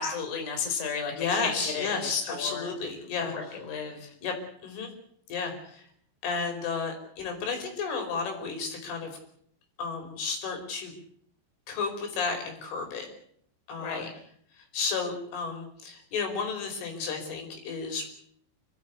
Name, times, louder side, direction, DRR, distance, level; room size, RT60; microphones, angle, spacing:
voice 1, 0.0-1.1 1.4-2.7 3.3-4.0 13.8-14.1, left 6 dB, 40° left, 4 dB, 5.1 m, -33 dB
voice 2, 1.1-3.6 4.2-4.4 4.6-4.9 5.3-5.9 6.2-9.2 9.8-10.9 11.7-13.1 13.7-14.1 14.6-18.1, left 5 dB, 85° left, 4 dB, 7.5 m, -32 dB
29.5 x 14.5 x 8.5 m, 0.66 s
omnidirectional pair, 5.5 m